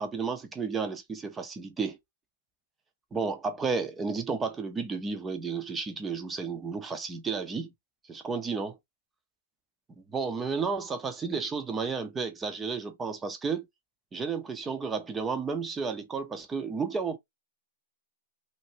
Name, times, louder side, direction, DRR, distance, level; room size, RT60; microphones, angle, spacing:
voice 1, 0.0-2.0 3.1-7.7 8.1-8.8 10.0-13.7 14.1-17.2, right 5 dB, 15° right, 0.7 m, -32 dB
2.8 x 2.7 x 2.9 m
hypercardioid pair, 135°, 0 cm